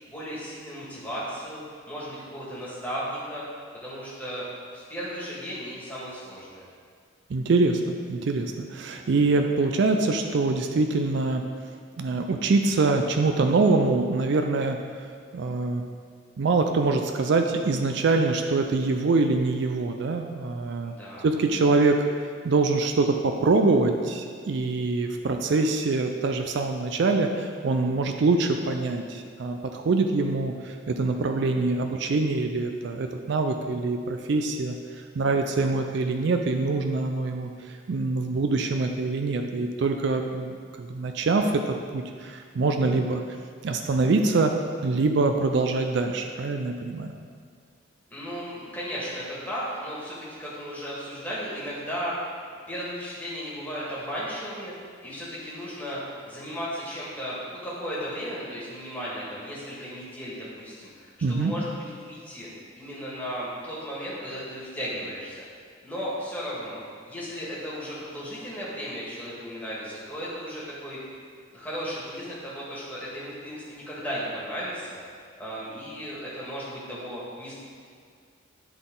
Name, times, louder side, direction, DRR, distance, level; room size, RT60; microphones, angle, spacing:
voice 1, 0.1-3.4 3.8-4.4 4.7-6.6 20.8-21.3 48.1-52.1 52.7-62.5 62.7-65.4 65.8-66.8 67.1-71.0 71.5-75.0 75.4-77.5, equal, 10° left, -8 dB, 1.6 m, -35 dB
voice 2, 7.3-11.4 12.0-14.8 15.3-15.8 16.4-20.9 21.2-22.1 22.4-34.8 35.2-41.6 41.9-43.2 43.6-44.5 44.8-47.1 61.2-61.5, right 3 dB, 60° right, 5 dB, 0.4 m, -24 dB
10.5 x 3.9 x 3.8 m, 2.1 s
head